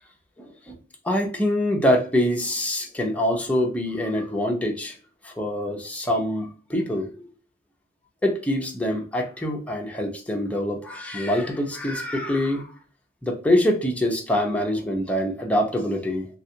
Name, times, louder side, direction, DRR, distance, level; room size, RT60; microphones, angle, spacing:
voice 1, 0.4-0.8 1.0-4.9 5.2-7.3 8.2-12.7 13.2-16.3, left 1 dB, 5° left, 0 dB, 0.7 m, -25 dB
3.2 x 2.4 x 2.7 m, 0.39 s
head